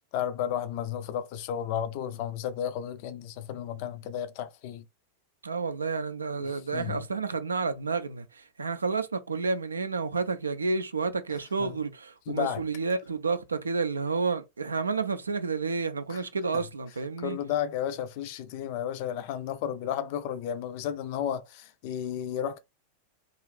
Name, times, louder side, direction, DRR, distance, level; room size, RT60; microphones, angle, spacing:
voice 1, 0.1-4.8 6.7-7.0 11.6-11.8 12.3-12.6 16.1-16.2 17.2-22.6, left 9 dB, 45° left, 0.4 m, -33 dB
voice 2, 5.4-17.4, right 4 dB, 75° right, 0.3 m, -30 dB
2.5 x 2.4 x 3.1 m
figure-of-eight pair, 90°, 0 cm